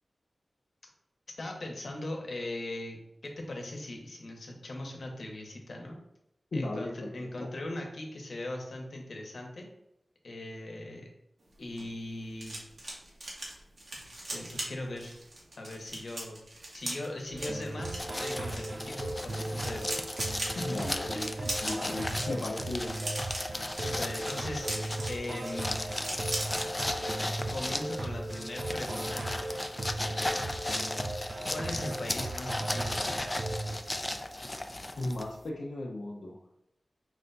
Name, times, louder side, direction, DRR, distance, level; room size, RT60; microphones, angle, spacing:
voice 1, 1.4-3.0 3.2-6.0 6.5-9.7 10.2-11.1 11.6-12.6 14.0-14.1 14.3-15.2 15.6-16.4 16.7-20.0 20.3-21.9 23.8-24.7 25.1-25.7 27.5-29.6 31.5-33.2, left 1 dB, 70° left, 1 dB, 0.9 m, -40 dB
voice 2, 6.5-7.5 20.6-21.2 21.6-22.9 35.0-36.4, left 2 dB, 85° left, -4 dB, 0.6 m, -36 dB
sound 1, 11.5-26.7 27.0-27.3 27.5-27.8, right 1 dB, 70° right, 1.2 m, -40 dB
sound 2, 17.3-33.8, right 2 dB, 50° right, 0.5 m, -37 dB
sound 3, 18.0-35.5, left 1 dB, 25° left, 0.3 m, -36 dB
4.8 x 2.2 x 3.8 m, 0.81 s
wide cardioid pair, 75°, 0 cm